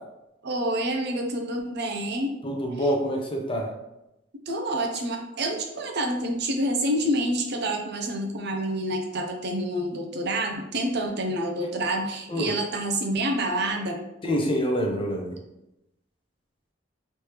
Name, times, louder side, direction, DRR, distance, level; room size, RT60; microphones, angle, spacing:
voice 1, 0.4-2.3 2.8-2.9 4.5-14.0, right 1 dB, 60° right, 3 dB, 0.6 m, -28 dB
voice 2, 2.4-3.7 12.3-12.5 14.2-15.4, equal, 30° left, 1 dB, 0.6 m, -26 dB
3.2 x 3.2 x 2.9 m, 0.91 s
head